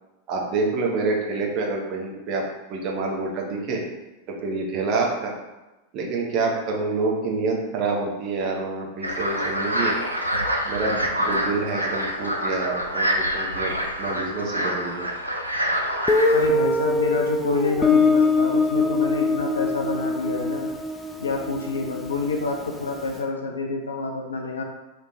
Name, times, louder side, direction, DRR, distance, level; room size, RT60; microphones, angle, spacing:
voice 1, 0.3-2.4 2.7-3.8 4.4-5.3 5.9-9.9 10.6-13.7 14.0-15.1, right 3 dB, 40° right, -1 dB, 0.7 m, -27 dB
sound 1, 9.0-16.5, equal, 85° right, 0.4 m, -26 dB
Guitar, 16.1-22.7, left 3 dB, 10° left, 0.3 m, -23 dB
voice 2, 16.3-20.7 21.2-24.6, left 3 dB, 75° left, 1 dB, 0.4 m, -27 dB
3.2 x 2.1 x 4.0 m, 1.1 s
figure-of-eight pair, 90°, 0 cm